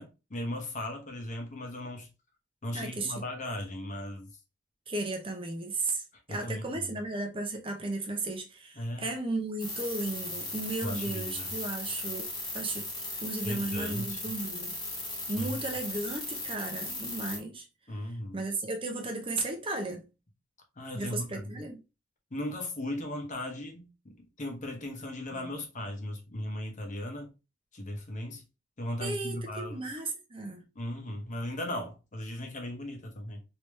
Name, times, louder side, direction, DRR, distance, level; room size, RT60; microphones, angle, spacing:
voice 1, 0.0-2.1 2.6-4.3 6.3-6.7 8.8-9.1 10.8-11.5 13.4-14.2 15.3-15.6 17.9-18.4 20.8-21.5 22.3-27.3 27.7-28.4 28.8-29.8 30.7-33.4, left 1 dB, 40° left, 0.9 m, -37 dB
voice 2, 2.7-3.2 4.9-12.3 12.5-12.9 13.2-14.7 15.3-17.7 18.0-20.1 20.9-21.8 25.3-25.6 29.0-30.6, right 2 dB, 25° right, 0.6 m, -35 dB
sound 1, 9.6-17.4, left 2 dB, 20° left, 1.2 m, -37 dB
3.3 x 2.9 x 3.1 m
head